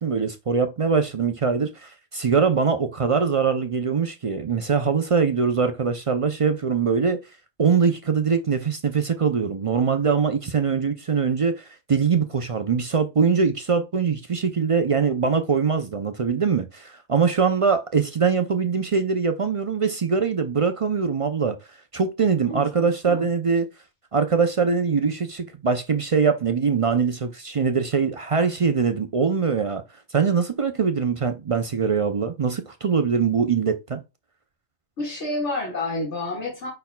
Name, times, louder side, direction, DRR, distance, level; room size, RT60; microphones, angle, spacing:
voice 1, 0.0-7.2 7.6-21.6 21.9-23.7 24.1-29.8 30.1-34.0, right 5 dB, 45° right, 0.4 m, -22 dB
voice 2, 22.5-23.3 35.0-36.7, left 2 dB, 85° left, 2.2 m, -29 dB
5.5 x 4.3 x 2.2 m
omnidirectional pair, 1.2 m